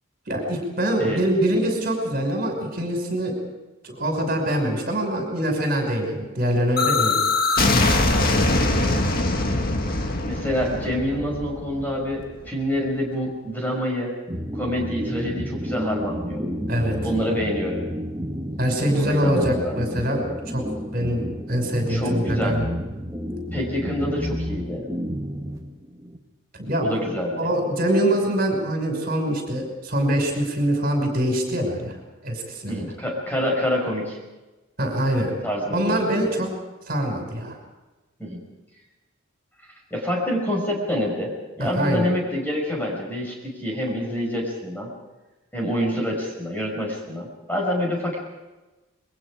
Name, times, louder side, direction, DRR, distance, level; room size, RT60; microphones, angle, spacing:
voice 1, 0.3-3.4 3.8-7.2 7.7-9.0 16.7-17.0 18.6-20.7 20.9-22.7 26.5-32.0 32.2-32.9 34.8-35.3 35.7-36.5 36.9-37.6 41.6-42.1, right 1 dB, 45° right, 2 dB, 5.8 m, -24 dB
sound 1, 6.8-12.5, left 2 dB, 45° left, 1.9 m, -22 dB
voice 2, 10.2-14.1 14.5-16.4 17.0-17.8 18.8-19.7 21.9-22.6 23.5-24.8 26.8-27.5 32.7-34.2 35.4-36.0 36.3-36.4 38.2-38.4 39.9-44.9 45.5-48.2, equal, 10° left, -1 dB, 5.7 m, -27 dB
sound 2, 14.3-26.2, equal, 15° right, 1.6 m, -31 dB
27.5 x 22.5 x 5.0 m, 1.1 s
head